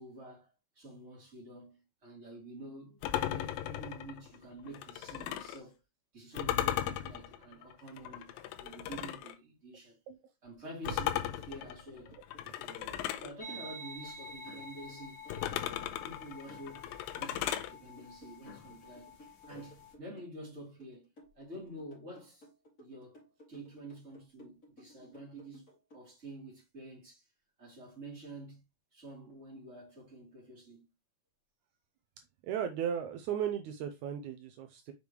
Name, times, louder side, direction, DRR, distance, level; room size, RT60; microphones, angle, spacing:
voice 1, 0.0-5.8 6.1-10.0 10.4-12.1 12.6-15.2 15.6-19.2 19.4-21.1 21.3-22.5 22.8-23.2 23.5-27.3 27.6-28.6 28.9-30.9, right 1 dB, 20° right, 3.2 m, -49 dB
sound 1, 3.0-5.6 6.4-9.4 10.9-13.3 15.3-17.7, left 12 dB, 85° left, 2.4 m, -36 dB
sound 2, 10.6-26.0, equal, 25° left, 3.0 m, -57 dB
sound 3, 13.4-19.9, left 2 dB, 45° left, 1.4 m, -49 dB
voice 2, 32.4-34.9, right 9 dB, 80° right, 1.7 m, -36 dB
6.7 x 5.0 x 3.1 m
omnidirectional pair, 4.2 m